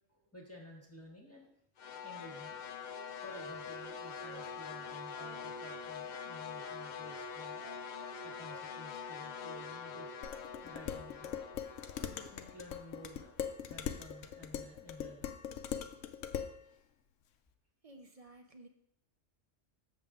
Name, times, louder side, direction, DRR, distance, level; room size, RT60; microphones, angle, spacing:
voice 1, 0.1-1.5 2.0-2.9 3.2-7.8 8.2-10.1 10.6-11.4 12.0-13.4 13.7-15.3 16.6-16.8, left 1 dB, 10° left, -2 dB, 1.2 m, -53 dB
sound 1, 1.8-14.0, left 6 dB, 55° left, 0.5 m, -45 dB
Wind instrument woodwind instrument, 2.8-6.3 6.6-8.2 8.5-8.7 9.0-9.6 9.9-10.2, right 4 dB, 70° right, 1.5 m, -56 dB
Dishes pots and pans, 10.2-16.6, left 9 dB, 85° left, 0.9 m, -41 dB
voice 2, 17.8-18.7, right 2 dB, 40° right, 5 dB, 0.6 m, -54 dB
7.4 x 6.6 x 3.7 m, 0.70 s
omnidirectional pair, 1.2 m